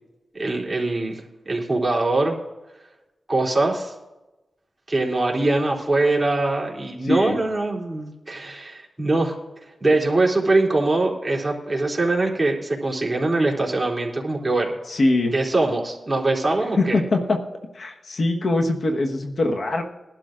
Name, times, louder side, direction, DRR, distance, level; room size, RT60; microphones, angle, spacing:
voice 1, 0.3-2.3 3.3-3.9 4.9-9.4 9.8-14.7 15.3-17.0, right 2 dB, 25° right, -3 dB, 3.2 m, -22 dB
voice 2, 7.0-7.4 14.9-15.3 16.8-17.4 17.7-19.8, left 2 dB, 65° left, 3 dB, 1.3 m, -22 dB
21.5 x 12.0 x 2.5 m, 1.1 s
cardioid pair, 65°, 0 cm